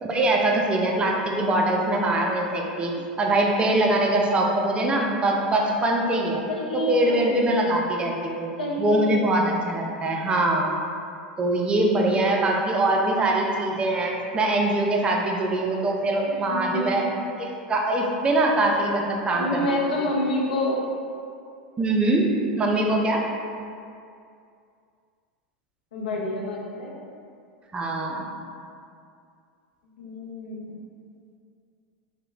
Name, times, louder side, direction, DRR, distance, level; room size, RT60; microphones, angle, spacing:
voice 1, 0.0-6.4 6.7-8.4 8.8-10.7 11.4-17.0 17.4-19.6 21.8-23.2 27.7-28.3, right 2 dB, 20° right, 0 dB, 0.4 m, -23 dB
voice 2, 6.5-7.6 8.6-9.2 16.3-17.1 19.4-20.8 25.9-27.0 30.0-30.8, left 1 dB, 80° left, -2 dB, 0.4 m, -28 dB
2.9 x 2.0 x 2.3 m, 2.4 s
hypercardioid pair, 90°, 5 cm